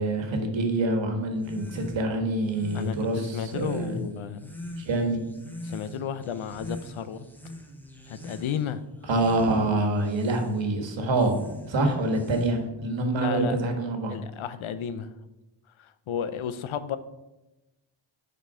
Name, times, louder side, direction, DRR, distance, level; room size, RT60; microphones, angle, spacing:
voice 1, 0.0-4.0 4.8-5.3 9.1-11.4 11.7-14.2, right 2 dB, 70° right, 4 dB, 1.7 m, -26 dB
sound 1, 1.3-12.8, left 1 dB, 5° left, 1.0 m, -44 dB
voice 2, 2.7-4.5 5.6-7.3 8.1-8.8 13.2-13.6 14.1-15.1 15.8-17.0, left 8 dB, 90° left, 12 dB, 0.7 m, -33 dB
6.2 x 5.3 x 5.6 m, 1.0 s
wide cardioid pair, 125°, 47 cm